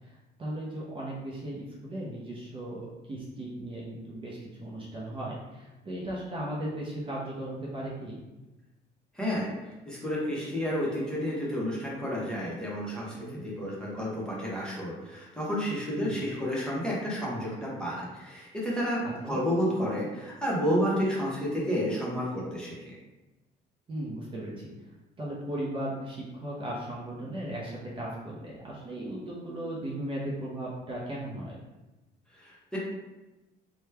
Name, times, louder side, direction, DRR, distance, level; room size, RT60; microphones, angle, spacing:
voice 1, 0.0-8.2 13.1-13.4 16.0-16.2 19.0-19.4 23.9-24.7 25.2-31.6, right 1 dB, 30° right, -5 dB, 0.7 m, -37 dB
voice 2, 9.1-22.9 32.3-32.8, equal, 5° left, -6 dB, 1.0 m, -31 dB
3.1 x 2.3 x 3.2 m, 1.1 s
cardioid pair, 110°, 17 cm